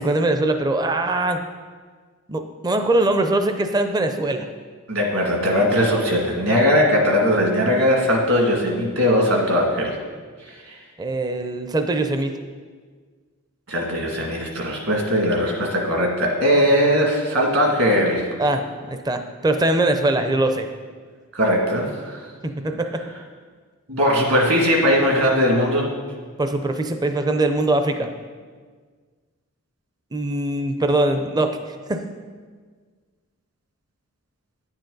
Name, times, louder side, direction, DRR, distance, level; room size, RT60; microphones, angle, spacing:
voice 1, 0.0-1.4 2.3-4.5 11.0-12.4 18.4-20.7 22.4-23.0 26.4-28.1 30.1-31.6 31.9-32.1, right 2 dB, 20° right, 7 dB, 0.4 m, -22 dB
voice 2, 4.9-10.0 10.4-10.7 13.7-18.2 21.3-22.3 23.9-25.9, equal, 65° right, -1 dB, 2.1 m, -19 dB
10.0 x 8.9 x 3.9 m, 1.6 s
head